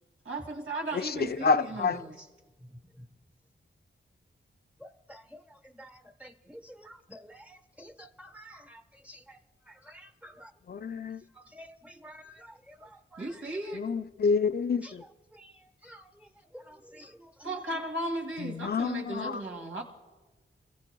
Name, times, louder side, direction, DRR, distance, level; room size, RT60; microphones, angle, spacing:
voice 1, 0.2-2.3 13.2-13.8 17.4-19.8, right 2 dB, 85° right, 2.5 m, -36 dB
voice 2, 0.9-2.0 10.7-11.2 13.8-15.0 18.4-19.4, left 5 dB, 50° left, 0.5 m, -28 dB
voice 3, 4.8-5.4 5.8-9.4 9.7-10.5 11.4-13.3 14.8-14.9 15.3-15.5 15.8-16.1 16.5-17.5, equal, 5° right, 1.0 m, -50 dB
27.0 x 15.5 x 2.3 m
cardioid pair, 50°, 21 cm